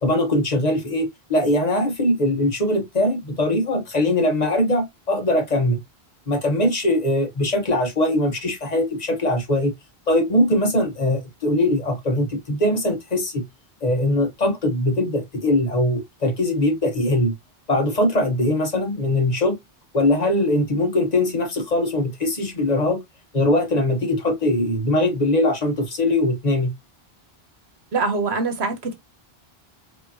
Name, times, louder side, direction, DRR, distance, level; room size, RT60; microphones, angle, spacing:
voice 1, 0.0-5.8 6.3-9.7 10.1-13.4 13.8-17.3 17.7-19.6 19.9-23.0 23.3-26.7, left 1 dB, 45° left, 1.1 m, -21 dB
voice 2, 27.9-28.9, right 4 dB, 85° right, 1.3 m, -23 dB
4.9 x 2.8 x 2.7 m
omnidirectional pair, 1.0 m